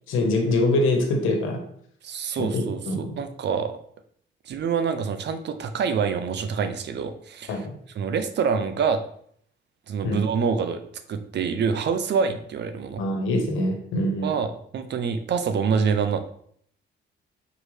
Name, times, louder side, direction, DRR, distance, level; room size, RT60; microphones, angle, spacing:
voice 1, 0.1-1.6 2.4-3.2 7.5-7.7 10.0-10.2 13.0-14.3, left 1 dB, 85° left, 3 dB, 1.3 m, -24 dB
voice 2, 2.0-3.7 4.5-7.7 7.9-9.0 9.9-10.8 11.1-13.0 14.2-16.2, right 6 dB, 60° right, 9 dB, 0.7 m, -26 dB
6.0 x 4.7 x 3.3 m, 0.65 s
cardioid pair, 90°, 20 cm